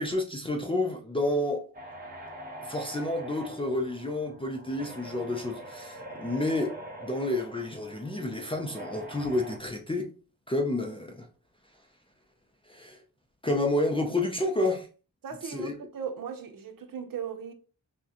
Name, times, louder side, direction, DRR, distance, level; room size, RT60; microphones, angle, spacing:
voice 1, 0.0-1.6 2.6-6.8 7.0-10.1 10.5-11.3 12.7-13.0 13.4-14.9 15.4-15.7, left 2 dB, 15° left, 0.4 m, -30 dB
sound 1, 1.7-9.6, right 1 dB, 25° right, 0.9 m, -43 dB
voice 2, 15.2-17.5, right 7 dB, 60° right, 0.7 m, -37 dB
5.8 x 2.2 x 2.9 m
wide cardioid pair, 175°, 37 cm